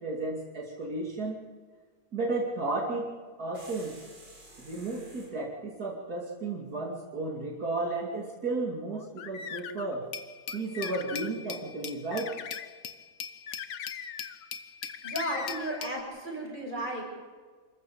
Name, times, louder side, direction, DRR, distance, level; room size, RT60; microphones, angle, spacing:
voice 1, 0.0-1.4 2.1-4.0 4.6-10.1 10.5-12.4, right 2 dB, 60° right, -2 dB, 3.0 m, -33 dB
sound 1, 3.5-5.4, right 2 dB, 75° right, 5.0 m, -51 dB
sound 2, 8.9-10.0 10.5-11.3 12.1-12.7 13.5-14.5 14.8-15.8, left 8 dB, 90° left, 1.7 m, -41 dB
Glass, 10.1-16.0, left 6 dB, 55° left, 1.3 m, -41 dB
voice 2, 15.0-17.0, right 1 dB, 25° right, -1 dB, 6.5 m, -34 dB
27.0 x 15.0 x 7.2 m, 1.5 s
omnidirectional pair, 1.9 m